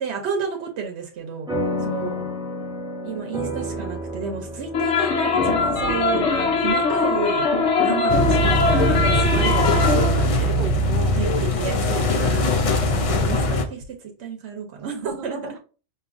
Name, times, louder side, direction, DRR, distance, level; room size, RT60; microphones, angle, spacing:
voice 1, 0.0-1.5 1.9-2.2 3.0-7.5 7.8-10.5 11.1-15.4, right 6 dB, 75° right, 0.9 m, -32 dB
sound 1, 1.5-10.2, left 1 dB, 5° right, 0.5 m, -32 dB
voice 2, 1.6-2.2 10.5-11.2 15.0-15.6, right 3 dB, 50° right, 0.7 m, -35 dB
sound 2, 4.7-10.2, left 4 dB, 75° left, 0.9 m, -21 dB
sound 3, 8.1-13.6, equal, 50° left, 0.4 m, -21 dB
4.8 x 2.6 x 2.4 m
omnidirectional pair, 1.2 m